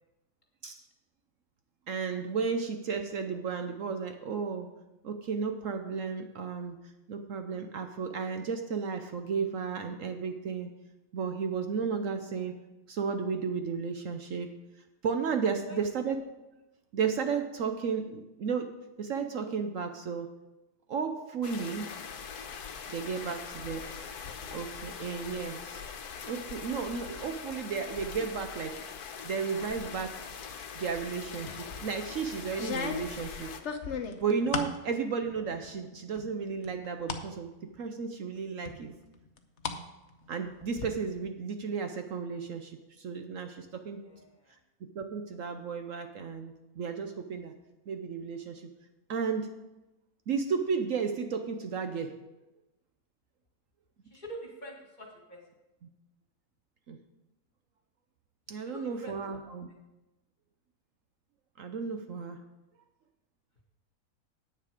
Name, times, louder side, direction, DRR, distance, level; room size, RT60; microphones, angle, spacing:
voice 1, 1.9-4.7 5.0-6.8 7.1-10.7 11.1-12.6 12.9-14.5 15.0-16.2 16.9-18.7 19.0-20.3 20.9-21.9 22.9-23.8 24.5-25.8 26.3-28.8 29.2-30.2 30.7-33.5 34.1-38.9 40.3-44.0 44.8-47.5 47.9-48.7 49.1-49.5 50.3-52.2 56.9-57.0 58.5-59.7 61.6-62.4, right 5 dB, 65° right, 6 dB, 1.1 m, -33 dB
sound 1, 21.4-33.6, left 6 dB, 80° left, 1.4 m, -42 dB
voice 2, 22.8-23.3 44.0-44.6 54.1-55.4 58.7-59.1, equal, 30° left, 0 dB, 2.0 m, -46 dB
sound 2, 31.5-31.9 32.5-34.8 35.2-35.8 36.2-37.3 37.7-37.8 38.7-39.8 40.1-40.9, left 5 dB, 55° left, 1.0 m, -36 dB
10.0 x 8.4 x 5.0 m, 1.0 s
omnidirectional pair, 1.6 m